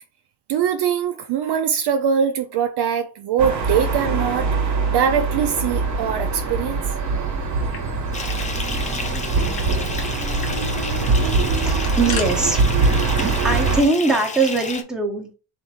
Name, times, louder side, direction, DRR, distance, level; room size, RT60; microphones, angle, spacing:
voice 1, 0.5-4.5 4.9-6.8, right 7 dB, 55° right, 0.5 m, -22 dB
sound 1, 3.4-13.8, right 3 dB, 35° right, 0.9 m, -22 dB
sound 2, 7.4-8.5 8.8-8.9 9.1-9.7 10.0-10.1 10.4-10.6 11.5-12.3, left 6 dB, 90° left, 1.1 m, -35 dB
Bathtub (filling or washing) / Fill (with liquid), 8.1-14.8, left 4 dB, 15° left, 0.4 m, -32 dB
voice 2, 11.6-12.6 13.2-15.3, right 3 dB, ahead, 0.8 m, -21 dB
3.5 x 2.7 x 4.2 m
cardioid pair, 130°, 49 cm